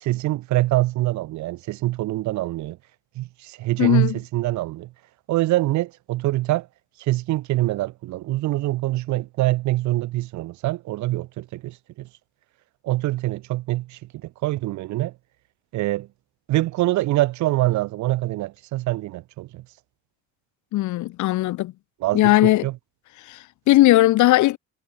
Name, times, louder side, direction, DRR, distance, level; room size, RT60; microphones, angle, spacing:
voice 1, 0.0-2.8 3.2-4.9 5.3-6.7 7.1-12.1 12.8-15.1 15.7-16.1 16.5-19.6 22.0-22.7, right 17 dB, 70° right, 1.0 m, -24 dB
voice 2, 3.8-4.2 20.7-21.7 22.1-22.7 23.3-24.6, left 17 dB, 75° left, 1.5 m, -18 dB
cardioid pair, 145°, 30 cm